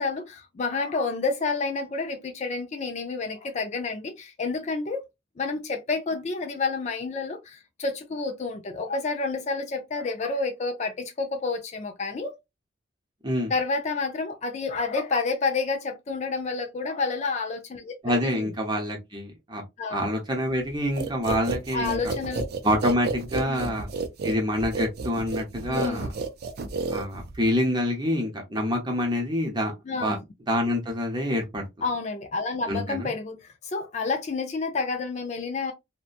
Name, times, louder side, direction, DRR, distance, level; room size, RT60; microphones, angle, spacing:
voice 1, 0.0-5.1 5.4-12.4 13.5-18.5 19.8-20.1 21.7-22.4 23.5-23.8 25.7-26.1 29.9-30.2 31.8-35.7, left 4 dB, 35° left, 0.3 m, -29 dB
voice 2, 18.0-19.6 19.9-22.0 22.6-23.9 24.2-26.1 26.9-29.7 30.0-30.2 30.5-31.6 32.7-33.1, equal, 20° right, 0.8 m, -26 dB
sound 1, 21.0-27.5, right 3 dB, 50° right, 0.4 m, -31 dB
2.8 x 2.1 x 2.4 m
head